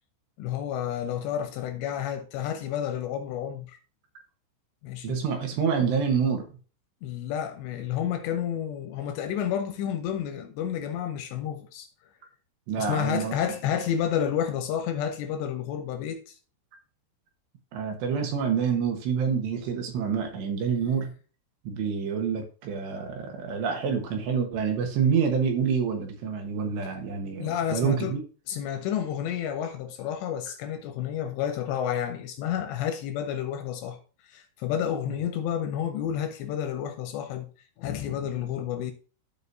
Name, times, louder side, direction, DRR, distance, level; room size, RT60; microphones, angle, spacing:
voice 1, 0.4-3.8 4.8-5.2 7.0-11.9 12.8-16.4 27.4-28.2 28.5-34.0 34.2-37.5 37.8-38.9, left 9 dB, 75° left, 2.7 m, -30 dB
voice 2, 5.0-6.5 12.7-13.3 17.7-21.1 21.6-28.2, right 6 dB, 70° right, 3.2 m, -27 dB
14.0 x 5.0 x 2.6 m
omnidirectional pair, 5.7 m